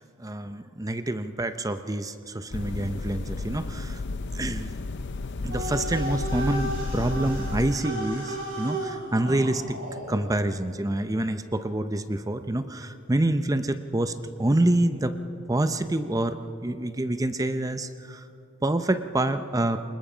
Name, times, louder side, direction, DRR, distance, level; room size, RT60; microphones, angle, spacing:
voice 1, 0.2-4.0 4.3-4.7 5.4-9.8 10.1-15.2 15.5-18.2 18.6-19.8, right 1 dB, 15° right, 10 dB, 0.6 m, -27 dB
sound 1, 2.5-7.8, left 3 dB, 60° left, 0.5 m, -32 dB
sound 2, 5.5-10.2, right 1 dB, 55° right, 6.4 m, -34 dB
26.0 x 21.0 x 5.0 m, 2.8 s
head